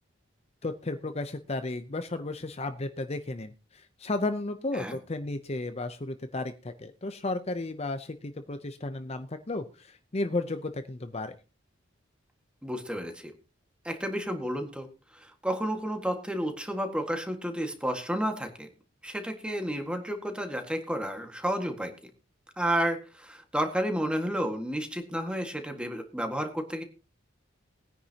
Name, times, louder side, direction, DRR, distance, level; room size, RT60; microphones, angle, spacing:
voice 1, 0.6-11.3, left 2 dB, 30° left, 9 dB, 0.7 m, -34 dB
voice 2, 12.6-13.3 13.8-18.7 19.0-22.1 22.6-26.8, equal, 5° right, 5 dB, 1.7 m, -31 dB
20.0 x 9.9 x 2.9 m, 0.31 s
head